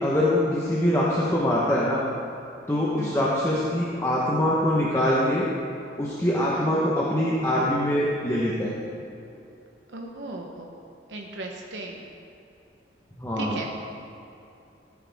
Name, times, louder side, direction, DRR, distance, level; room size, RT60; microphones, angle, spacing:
voice 1, 0.0-2.0 2.7-5.5 6.0-8.8 13.2-13.6, left 1 dB, 15° left, -6 dB, 1.1 m, -23 dB
voice 2, 3.0-3.3 6.6-6.9 9.9-10.7 11.1-12.1 13.4-13.7, right 2 dB, 80° right, 0 dB, 0.9 m, -37 dB
14.5 x 9.8 x 3.6 m, 2.7 s
head